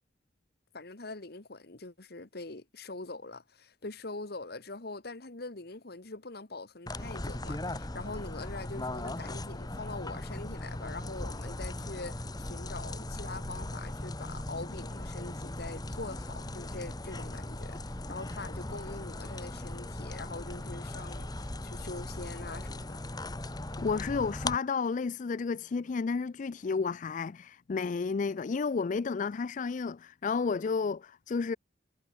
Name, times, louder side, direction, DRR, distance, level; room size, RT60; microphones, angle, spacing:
voice 1, 0.7-23.0, left 3 dB, 60° left, 1.6 m, -43 dB
sound 1, 6.9-24.6, left 1 dB, 25° left, 1.3 m, -38 dB
voice 2, 23.8-31.6, left 5 dB, 45° left, 0.4 m, -31 dB
head